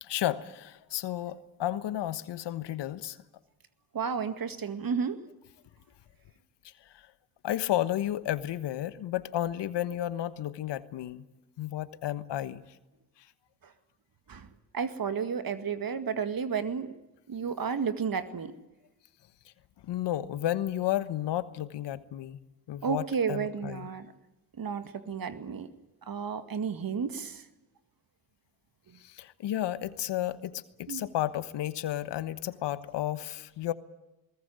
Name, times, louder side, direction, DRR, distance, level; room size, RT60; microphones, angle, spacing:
voice 1, 0.0-3.2 6.6-7.1 7.4-11.2 11.6-12.6 13.2-13.3 19.8-22.4 22.7-23.9 29.0-33.7, left 13 dB, 75° left, 14 dB, 1.3 m, -32 dB
voice 2, 3.9-5.2 14.3-14.5 14.7-16.9 17.3-18.5 22.8-24.1 24.6-25.7 26.1-27.4 30.9-31.0, right 6 dB, 55° right, 10 dB, 2.1 m, -32 dB
21.0 x 19.0 x 9.4 m, 1.0 s
hypercardioid pair, 45°, 42 cm